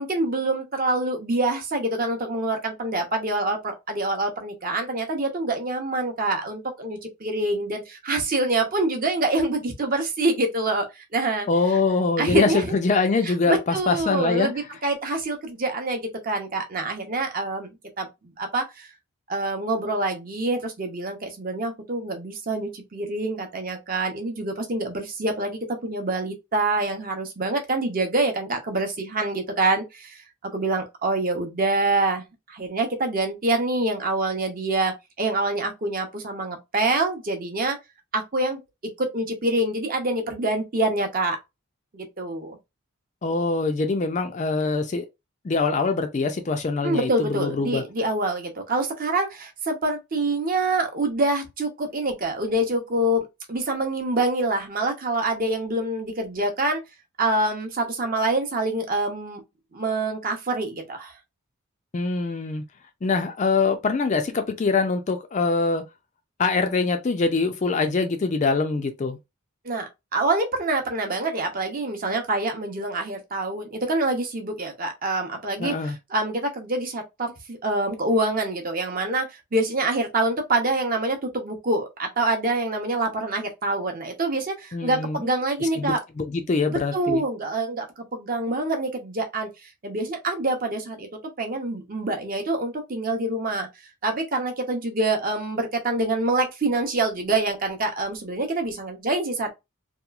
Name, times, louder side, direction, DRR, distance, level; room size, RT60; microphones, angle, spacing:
voice 1, 0.0-11.5 12.2-12.7 13.2-17.7 18.0-18.1 18.4-18.9 19.3-37.8 38.1-41.4 41.9-42.6 46.8-56.8 57.2-59.4 59.7-61.1 69.6-86.0 86.7-91.1 91.4-93.7 94.0-99.5, right 2 dB, 40° right, 0.6 m, -26 dB
voice 2, 11.5-14.5 43.2-45.1 45.4-47.8 61.9-62.6 63.0-65.8 66.4-69.2 75.6-76.0 84.7-85.2 85.8-87.2, left 4 dB, 30° left, 0.3 m, -23 dB
2.9 x 2.3 x 2.3 m
head